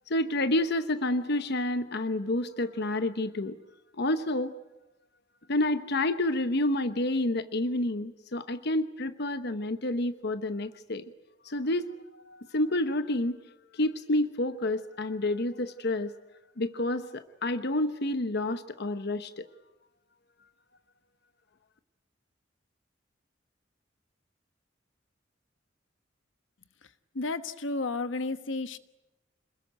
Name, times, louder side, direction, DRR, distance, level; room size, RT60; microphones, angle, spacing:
voice 1, 0.1-3.6 4.0-4.5 5.5-11.0 11.4-13.4 13.7-16.1 16.6-19.5, left 1 dB, 60° left, 11 dB, 1.1 m, -29 dB
voice 2, 27.1-28.8, left 3 dB, 80° left, 11 dB, 1.3 m, -32 dB
27.5 x 21.0 x 9.2 m, 0.98 s
head